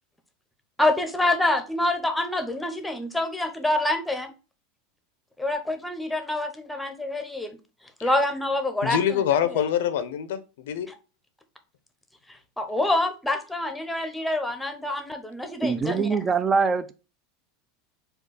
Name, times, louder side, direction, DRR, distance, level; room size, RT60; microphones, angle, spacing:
voice 1, 0.8-4.3 5.4-7.6 8.0-9.0 12.6-16.1, left 2 dB, 5° left, 0.7 m, -26 dB
voice 2, 8.8-10.9, left 9 dB, 85° left, 0.6 m, -25 dB
voice 3, 15.6-16.9, right 5 dB, 20° right, 0.4 m, -23 dB
4.4 x 2.3 x 4.7 m
supercardioid pair, 130°, 0 cm